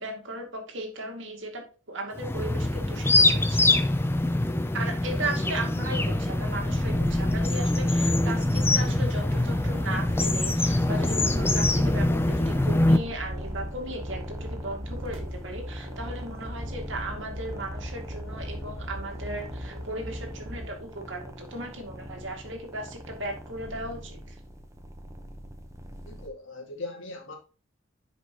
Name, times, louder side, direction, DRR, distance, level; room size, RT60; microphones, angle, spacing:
voice 1, 0.0-3.7 4.7-24.4, right 1 dB, 65° right, 2.3 m, -36 dB
sound 1, 2.2-13.0, left 2 dB, 10° left, 0.5 m, -24 dB
sound 2, 6.6-26.3, equal, 15° right, 1.0 m, -41 dB
sound 3, 8.7-20.7, equal, 80° right, 2.2 m, -40 dB
voice 2, 26.1-27.4, left 2 dB, 65° left, 2.1 m, -39 dB
10.0 x 5.3 x 3.0 m
head